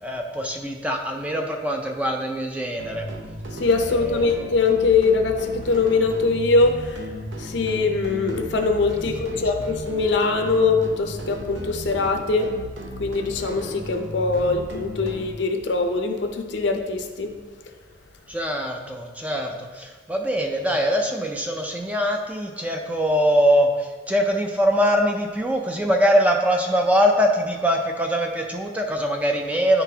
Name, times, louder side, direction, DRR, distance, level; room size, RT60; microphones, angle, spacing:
voice 1, 0.0-3.1 4.0-4.3 9.3-9.4 18.3-29.8, equal, 5° right, 2 dB, 0.3 m, -23 dB
sound 1, 2.8-15.3, equal, 75° right, 0.6 m, -35 dB
voice 2, 3.5-7.0 7.4-12.5 13.0-17.3, left 4 dB, 65° left, 5 dB, 0.6 m, -22 dB
9.7 x 3.9 x 2.8 m, 1.4 s
head